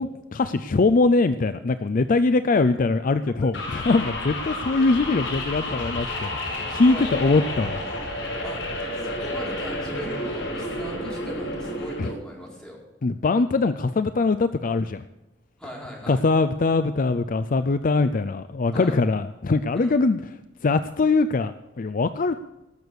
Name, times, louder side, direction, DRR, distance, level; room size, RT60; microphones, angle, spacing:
voice 1, 0.0-7.8 12.0-12.1 13.0-15.0 16.1-20.2 20.6-22.3, left 3 dB, 45° left, 12 dB, 0.5 m, -22 dB
sound 1, 3.5-12.1, left 1 dB, 90° left, 5.1 m, -31 dB
voice 2, 6.0-7.8 8.4-8.6 8.9-12.8 15.6-16.2 18.7-19.0 19.7-20.0, equal, 5° left, -5 dB, 4.7 m, -39 dB
18.5 x 7.0 x 6.3 m, 0.97 s
head